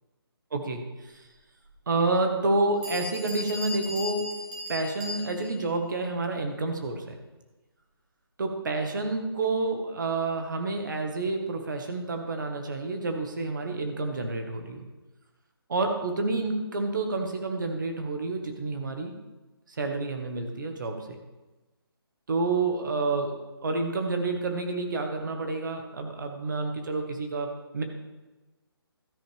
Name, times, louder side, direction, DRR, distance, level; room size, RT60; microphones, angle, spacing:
voice 1, 0.5-1.2 1.9-4.3 4.7-7.2 8.4-14.8 15.7-19.2 19.8-21.2 22.3-23.3 23.6-27.8, right 3 dB, 50° right, 4 dB, 1.7 m, -29 dB
Bell, 1.6-1.7 2.4-2.5 2.8-5.6, left 1 dB, 20° right, 2.3 m, -37 dB
13.0 x 10.0 x 3.5 m, 1.1 s
hypercardioid pair, 170°, 13 cm